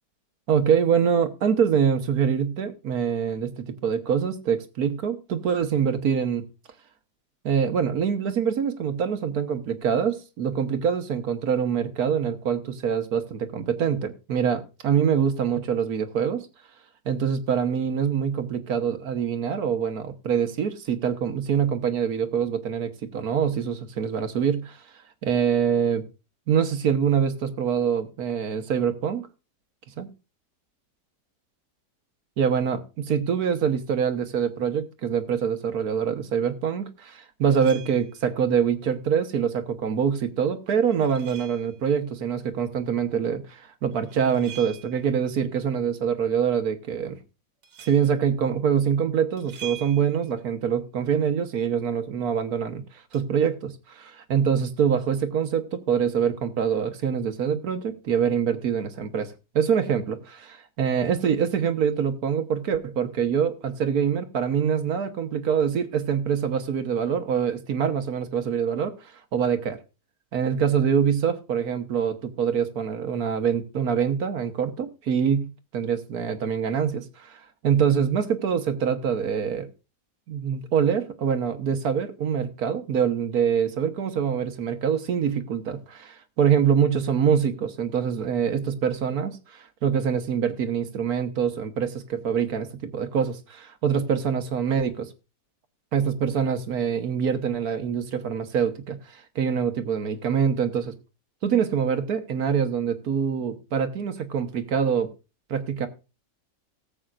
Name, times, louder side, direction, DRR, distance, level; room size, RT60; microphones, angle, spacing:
voice 1, 0.5-6.4 7.4-16.5 17.0-24.8 25.2-26.0 26.5-29.2 30.0-30.1 32.4-47.2 47.8-52.8 53.1-68.9 69.3-69.8 70.3-79.7 80.3-95.1 95.9-101.0 101.4-105.1 105.5-105.9, right 7 dB, 60° right, 1.5 m, -25 dB
sound 1, 37.5-38.2 40.7-41.8 43.9-45.2 47.6-48.1 49.4-50.4 53.1-53.2, right 12 dB, 85° right, 2.1 m, -44 dB
18.5 x 7.9 x 2.5 m
omnidirectional pair, 1.8 m